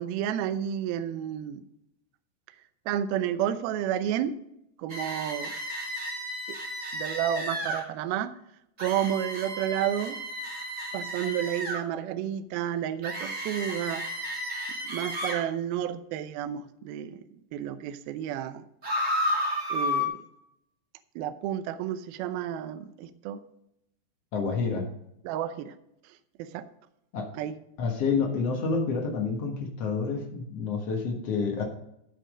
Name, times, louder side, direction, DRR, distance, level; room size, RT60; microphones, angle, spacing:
voice 1, 0.0-1.6 2.9-4.4 4.8-5.5 6.5-6.6 6.9-8.3 8.8-10.2 10.9-14.1 14.8-17.2 17.5-18.6 19.7-20.2 21.2-23.4 25.2-25.8 26.1-26.7 27.3-27.6, right 10 dB, 85° right, 11 dB, 2.1 m, -31 dB
sound 1, 4.9-7.8 8.8-11.8 13.0-15.4 18.8-20.0, equal, 40° right, 1.0 m, -32 dB
voice 2, 24.3-24.9 27.1-27.3 27.8-31.6, left 5 dB, 75° left, 1 dB, 1.4 m, -28 dB
14.5 x 5.6 x 5.1 m, 0.80 s
omnidirectional pair, 5.3 m